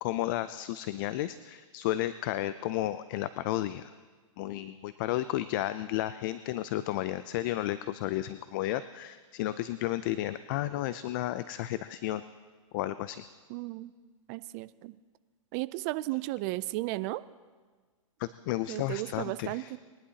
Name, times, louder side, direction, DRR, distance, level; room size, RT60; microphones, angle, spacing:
voice 1, 0.0-3.9 4.4-12.2 12.7-13.2 18.2-19.7, left 14 dB, 40° left, 14 dB, 0.4 m, -32 dB
voice 2, 13.5-13.9 14.3-15.0 15.5-17.2 18.7-19.8, right 19 dB, 30° right, 16 dB, 0.4 m, -34 dB
21.5 x 11.0 x 2.9 m, 1.4 s
hypercardioid pair, 140°, 17 cm